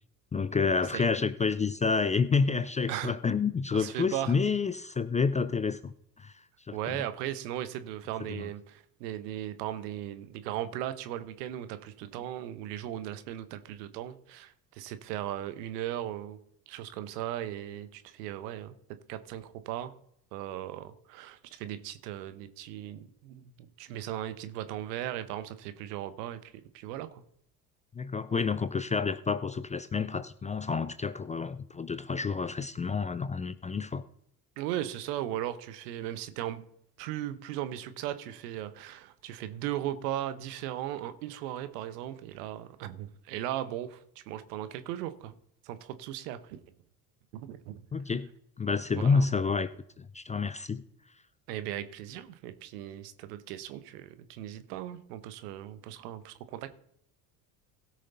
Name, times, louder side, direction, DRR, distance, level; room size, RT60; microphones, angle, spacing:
voice 1, 0.3-6.3 6.7-6.8 8.3-8.4 27.9-34.0 47.9-48.3 48.6-49.7 50.0-50.8, left 5 dB, 15° left, 0.4 m, -29 dB
voice 2, 3.7-4.4 6.7-16.4 16.7-18.8 19.1-19.9 20.3-27.2 34.6-36.6 37.0-45.3 45.6-46.6 47.3-47.8 48.9-49.2 51.5-56.7, right 12 dB, 75° right, 1.1 m, -37 dB
16.5 x 6.4 x 4.0 m
hypercardioid pair, 65°, 49 cm